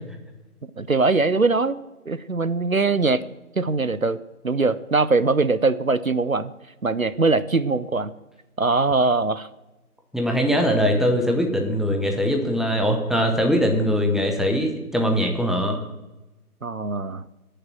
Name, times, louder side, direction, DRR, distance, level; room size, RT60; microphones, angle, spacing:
voice 1, 0.8-1.8 2.1-3.2 3.6-4.2 4.4-6.5 6.8-8.2 8.6-9.5 16.6-17.2, right 3 dB, 65° right, 15 dB, 0.6 m, -21 dB
voice 2, 10.1-15.8, equal, ahead, 2 dB, 0.7 m, -21 dB
14.0 x 6.7 x 7.3 m, 1.0 s
figure-of-eight pair, 180°, 45 cm